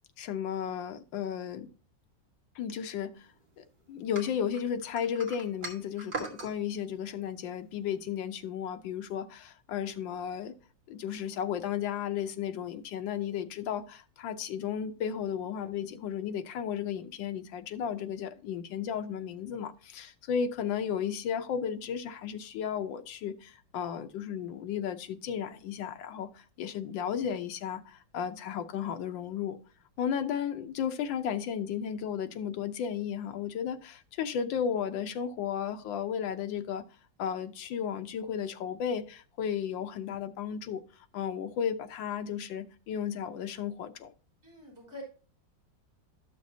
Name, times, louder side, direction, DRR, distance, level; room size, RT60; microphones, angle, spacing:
voice 1, 0.2-1.7 2.5-3.3 3.6-10.5 10.9-29.6 30.0-36.8 37.2-40.8 41.1-44.1, left 8 dB, 90° left, 1.5 m, -34 dB
sound 1, 4.1-6.5, right 3 dB, 30° right, 1.5 m, -40 dB
voice 2, 44.4-45.0, left 2 dB, 10° right, 3.7 m, -46 dB
12.0 x 6.2 x 2.7 m
omnidirectional pair, 2.0 m